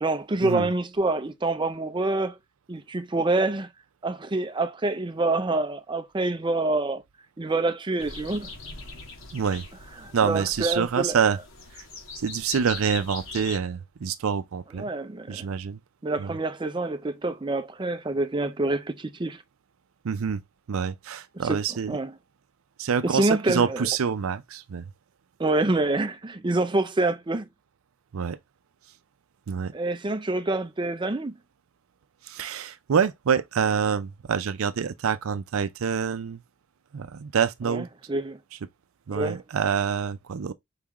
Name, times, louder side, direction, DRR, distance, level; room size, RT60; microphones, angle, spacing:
voice 1, 0.0-2.4 2.7-3.7 4.0-7.0 7.4-8.5 10.0-11.2 14.7-15.5 16.0-19.4 21.3-21.6 21.9-22.1 23.0-23.9 25.4-27.5 29.7-31.3 37.6-38.4 39.1-39.4, right 2 dB, 20° right, 0.5 m, -26 dB
sound 1, 8.0-13.6, left 4 dB, 75° left, 1.5 m, -41 dB
voice 2, 9.3-9.6 10.1-11.4 12.2-14.9 15.3-15.8 16.2-16.3 20.0-20.4 20.7-22.0 22.8-24.8 28.1-28.4 29.5-29.7 32.3-36.4 36.9-37.9 39.1-40.5, right 6 dB, 90° right, 0.5 m, -26 dB
4.7 x 3.6 x 3.0 m
head